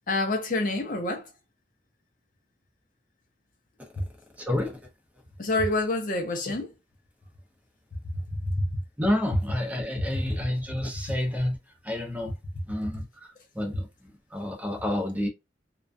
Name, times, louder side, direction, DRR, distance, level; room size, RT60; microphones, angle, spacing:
voice 1, 0.1-1.3 5.4-6.7 8.3-8.8 10.1-10.2, left 2 dB, 50° left, 0.5 m, -27 dB
voice 2, 4.4-4.8 9.0-11.6 11.8-12.3 12.7-13.0 13.5-15.3, left 1 dB, 10° right, 0.6 m, -29 dB
2.3 x 2.2 x 2.5 m
head